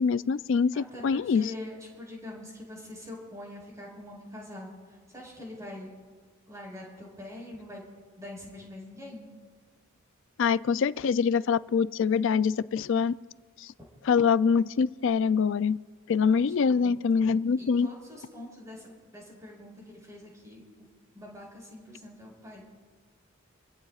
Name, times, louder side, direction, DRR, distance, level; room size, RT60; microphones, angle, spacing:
voice 1, 0.0-1.5 10.4-13.1 14.0-15.8 16.1-17.9, left 6 dB, 60° left, 16 dB, 0.3 m, -24 dB
voice 2, 0.7-5.9 6.5-7.8 8.2-9.3 16.3-17.0 17.6-20.6 21.1-22.7, left 1 dB, 15° right, -2 dB, 5.1 m, -44 dB
26.5 x 16.0 x 2.4 m, 1.5 s
head